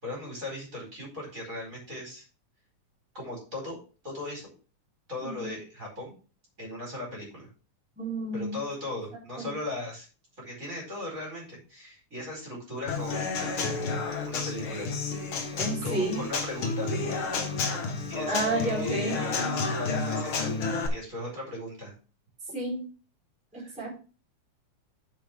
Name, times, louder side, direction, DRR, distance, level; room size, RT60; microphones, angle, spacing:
voice 1, 0.0-2.3 3.1-3.8 4.0-4.5 5.1-6.1 6.6-7.5 8.3-10.1 10.4-14.9 15.8-17.2 18.1-20.5 20.9-21.9 23.5-23.7, left 1 dB, 25° right, -2 dB, 5.0 m, -38 dB
voice 2, 8.0-8.6 9.4-9.5 15.5-16.2 18.3-19.2 22.5-22.8 23.5-23.9, right 1 dB, ahead, -5 dB, 3.9 m, -31 dB
Human voice / Acoustic guitar / Drum, 12.9-20.9, left 4 dB, 50° left, 1.9 m, -30 dB
8.7 x 7.6 x 3.5 m, 0.34 s
omnidirectional pair, 3.5 m